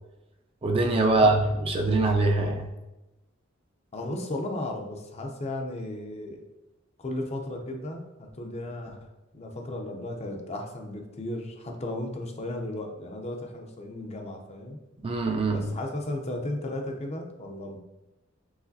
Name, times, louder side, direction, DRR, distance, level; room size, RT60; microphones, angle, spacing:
voice 1, 0.6-2.7 15.0-15.7, right 2 dB, 25° right, 3 dB, 0.4 m, -23 dB
voice 2, 1.1-1.5 1.8-2.1 3.9-6.5 7.0-9.0 9.3-14.8 15.5-17.8, left 1 dB, 30° left, 3 dB, 0.5 m, -35 dB
4.8 x 3.9 x 2.7 m, 1.0 s
head